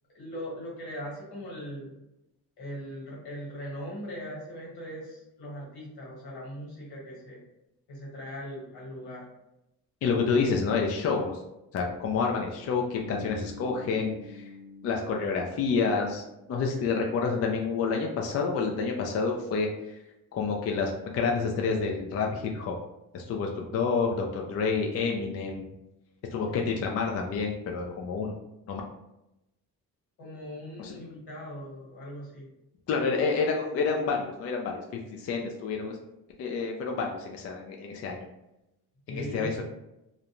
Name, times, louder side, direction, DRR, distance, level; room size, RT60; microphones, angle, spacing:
voice 1, 0.1-2.0 2.6-7.4 7.9-9.3 26.4-26.7 30.2-32.5 39.1-39.6, equal, 80° left, -4 dB, 1.5 m, -40 dB
voice 2, 10.0-11.4 11.7-14.5 14.8-16.2 16.5-20.0 20.3-22.8 23.1-25.7 26.3-28.4 28.7-28.8 30.8-30.9 32.9-34.8 35.1-36.0 36.4-38.3 39.1-39.6, left 4 dB, 40° left, 1 dB, 0.4 m, -28 dB
Bass guitar, 13.0-16.9, left 3 dB, 80° right, 0.7 m, -47 dB
2.5 x 2.1 x 2.9 m, 0.89 s
cardioid pair, 100°, 38 cm